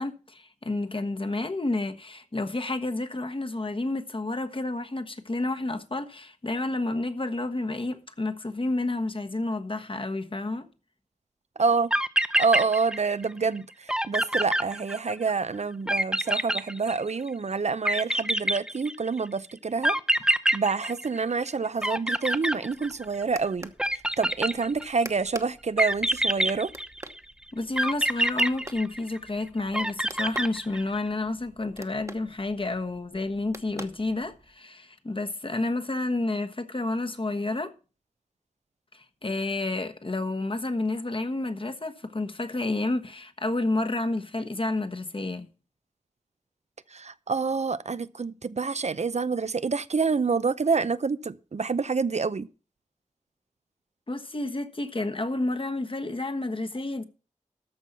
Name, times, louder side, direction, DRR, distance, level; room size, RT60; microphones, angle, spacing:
voice 1, 0.0-10.7 27.5-37.7 38.9-45.5 54.1-57.0, left 2 dB, 45° left, 1.2 m, -30 dB
sound 1, 11.6-11.7 11.9-13.3 13.6-13.7 13.9-15.3 15.9-17.3 17.8-19.2 19.8-21.5 21.8-23.2 23.8-25.0 25.8-27.2 27.8-29.3 29.7-31.0, right 1 dB, 5° right, 0.7 m, -26 dB
voice 2, 11.6-11.9 12.4-13.7 14.1-19.9 20.5-23.7 24.2-26.7 46.9-52.5, right 4 dB, 60° right, 0.5 m, -27 dB
sound 2, 22.6-34.6, right 1 dB, 25° right, 1.1 m, -47 dB
13.5 x 5.4 x 7.2 m
wide cardioid pair, 75°, 13 cm